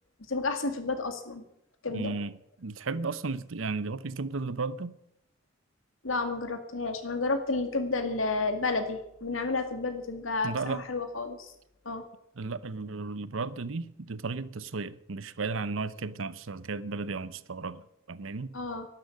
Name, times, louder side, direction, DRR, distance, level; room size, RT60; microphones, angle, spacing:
voice 1, 0.3-1.4 1.8-2.1 6.0-11.5 11.9-12.0 18.5-18.9, left 3 dB, 85° left, 2.2 m, -31 dB
voice 2, 1.9-2.3 2.6-4.9 10.4-10.8 12.4-18.5, right 4 dB, 80° right, 0.8 m, -34 dB
12.0 x 12.0 x 8.4 m
head